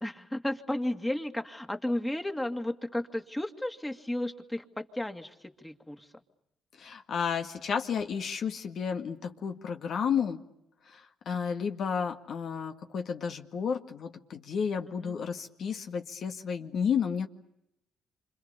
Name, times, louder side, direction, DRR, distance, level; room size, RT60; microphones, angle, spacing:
voice 1, 0.0-6.1 14.9-15.2, left 1 dB, 10° left, 5 dB, 2.2 m, -33 dB
voice 2, 6.8-10.4 10.9-17.3, left 7 dB, 65° left, 5 dB, 2.0 m, -32 dB
28.0 x 26.5 x 6.9 m, 0.82 s
cardioid pair, 90°, 0 cm